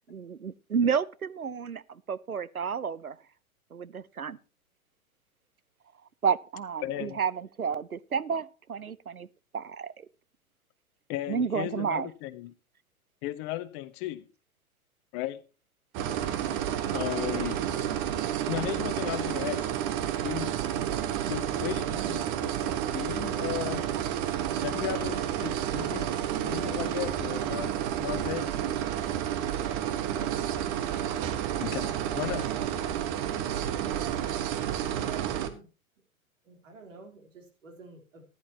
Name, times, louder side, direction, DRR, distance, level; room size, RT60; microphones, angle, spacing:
voice 1, 0.0-3.2 3.7-4.4 6.2-9.3 9.5-9.9 11.3-12.1 16.3-16.5, right 6 dB, 85° right, 0.8 m, -31 dB
voice 2, 6.8-7.2 11.1-12.5 13.2-14.2 15.1-15.4 16.9-17.7 18.5-19.8 20.2-20.6 21.3-23.9 24.6-26.1 26.4-28.6 31.6-32.5, left 15 dB, 30° left, 0.9 m, -35 dB
sound 1, 15.9-35.5, right 10 dB, 35° right, 1.5 m, -30 dB
voice 3, 30.0-30.4 35.0-35.7 36.4-38.2, right 5 dB, 65° right, 3.8 m, -48 dB
15.0 x 11.0 x 2.9 m
figure-of-eight pair, 105°, 42 cm